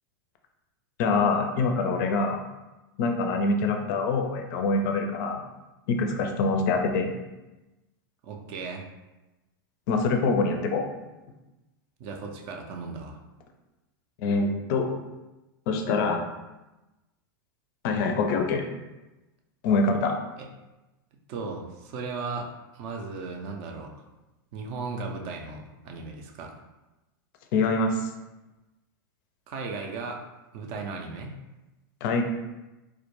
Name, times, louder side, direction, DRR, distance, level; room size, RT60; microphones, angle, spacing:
voice 1, 1.0-2.4 3.0-5.4 5.9-7.1 9.9-10.8 14.2-14.9 15.7-16.2 17.8-18.7 19.6-20.2 27.5-28.1 32.0-32.2, left 3 dB, 55° left, 4 dB, 0.4 m, -25 dB
voice 2, 8.2-8.9 12.0-13.2 20.4-20.5 21.3-23.9 24.5-26.5 29.5-30.2 30.5-31.4, right 4 dB, 45° right, 2 dB, 0.4 m, -36 dB
2.2 x 2.1 x 2.9 m, 1.0 s
hypercardioid pair, 130°, 12 cm